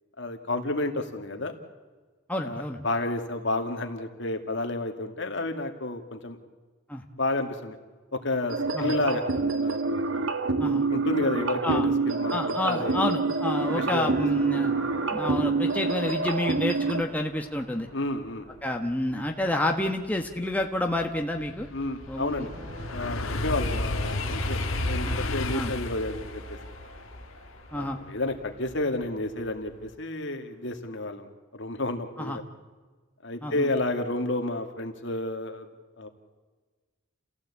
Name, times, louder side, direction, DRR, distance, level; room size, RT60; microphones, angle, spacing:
voice 1, 0.2-1.5 2.4-6.4 7.1-7.8 8.1-10.1 10.9-13.1 13.7-14.1 14.5-14.6 17.9-18.5 21.7-22.5 22.9-26.4 27.7-31.3 31.5-32.4 33.2-35.7 36.0-36.1, left 2 dB, 60° left, 5 dB, 2.2 m, -31 dB
voice 2, 2.3-2.8 6.9-7.0 8.7-8.9 10.6-10.9 11.6-11.9 12.3-14.7 15.1-17.9 18.6-21.7 22.1-22.5 25.0-25.2 25.5-25.7 27.7-28.0 32.2-32.4 33.4-33.7, left 1 dB, 10° left, 2 dB, 1.4 m, -29 dB
sound 1, 8.5-17.0, right 3 dB, 70° right, 1.7 m, -27 dB
sound 2, 13.0-20.2 22.1-29.9, right 1 dB, 55° right, 7.4 m, -45 dB
sound 3, 19.4-19.5 20.0-29.0 29.5-29.8, left 2 dB, 85° left, 1.5 m, -33 dB
29.5 x 16.0 x 8.5 m, 1.4 s
head